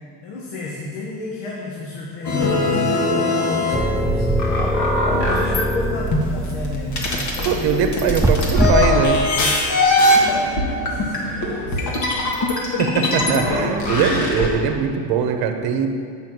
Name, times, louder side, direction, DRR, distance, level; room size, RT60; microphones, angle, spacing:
voice 1, 0.2-4.8 5.2-7.9 10.1-12.1 13.0-13.5, left 2 dB, 90° left, -3 dB, 1.4 m, -31 dB
sound 1, 2.2-5.7 6.1-14.5, left 2 dB, 45° left, 1.7 m, -21 dB
sound 2, 3.7-9.3, right 1 dB, 5° right, 0.4 m, -23 dB
voice 2, 7.4-9.2 12.6-15.9, right 6 dB, 60° right, 6 dB, 1.0 m, -21 dB
7.5 x 5.8 x 6.0 m, 2.1 s
cardioid pair, 120°, 42 cm